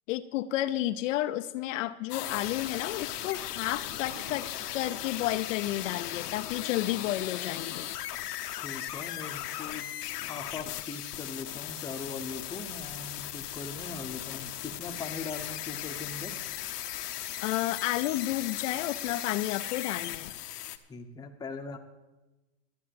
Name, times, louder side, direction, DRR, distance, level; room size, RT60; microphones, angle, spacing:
voice 1, 0.1-7.8 17.4-20.3, left 14 dB, 55° left, 11 dB, 0.6 m, -31 dB
sound 1, 2.1-20.8, left 13 dB, 80° left, 1.1 m, -37 dB
sound 2, 4.0-6.4, right 5 dB, 35° right, 1.5 m, -56 dB
voice 2, 8.6-9.9 10.3-16.3 20.9-21.8, left 4 dB, 10° left, 4 dB, 0.8 m, -40 dB
sound 3, 12.2-18.5, right 2 dB, 85° right, 3.3 m, -56 dB
12.5 x 8.2 x 7.6 m, 1.1 s
supercardioid pair, 145°, 46 cm